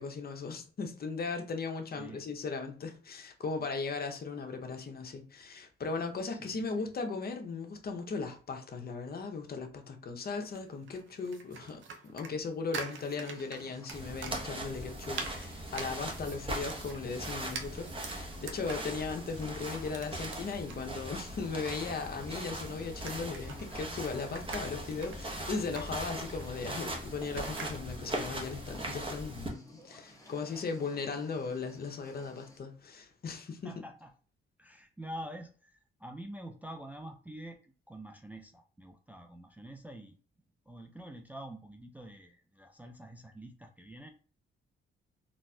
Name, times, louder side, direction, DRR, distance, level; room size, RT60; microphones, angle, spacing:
voice 1, 0.0-33.8, left 4 dB, 45° left, 0.7 m, -37 dB
voice 2, 6.3-6.9 33.6-34.1 34.6-37.6 37.9-40.2 40.7-44.1, right 1 dB, 5° right, 0.4 m, -46 dB
sound 1, 10.3-27.8, right 4 dB, 65° right, 0.5 m, -47 dB
sound 2, 13.3-32.6, equal, 15° left, 1.0 m, -56 dB
sound 3, 13.9-29.5, right 1 dB, 25° right, 0.9 m, -40 dB
4.0 x 2.4 x 2.2 m
cardioid pair, 85°, 21 cm